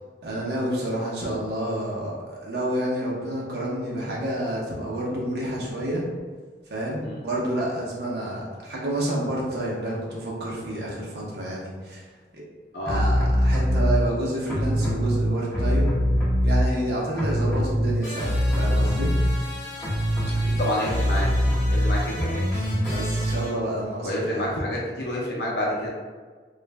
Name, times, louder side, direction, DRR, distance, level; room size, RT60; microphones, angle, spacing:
voice 1, 0.2-6.1 6.7-12.0 12.3-12.4 12.9-15.9 16.4-19.2 22.0-22.1 22.9-24.6, right 1 dB, 70° right, -4 dB, 0.7 m, -29 dB
sound 1, 12.8-14.0 14.5-16.9 17.1-23.5, equal, 15° left, 0.8 m, -23 dB
voice 2, 20.4-21.3 21.7-22.3 24.0-25.9, left 1 dB, 65° left, -4 dB, 0.5 m, -28 dB
2.4 x 2.0 x 3.3 m, 1.5 s
head